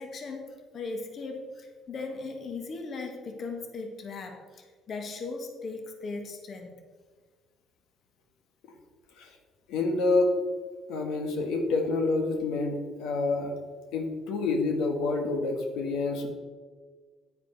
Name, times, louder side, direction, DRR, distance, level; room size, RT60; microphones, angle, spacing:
voice 1, 0.0-6.8, left 3 dB, 45° left, 4 dB, 1.5 m, -38 dB
voice 2, 9.7-10.3 10.9-13.5 13.9-16.3, left 3 dB, 90° left, 4 dB, 1.6 m, -28 dB
9.8 x 9.7 x 4.0 m, 1.5 s
cardioid pair, 140°, 0 cm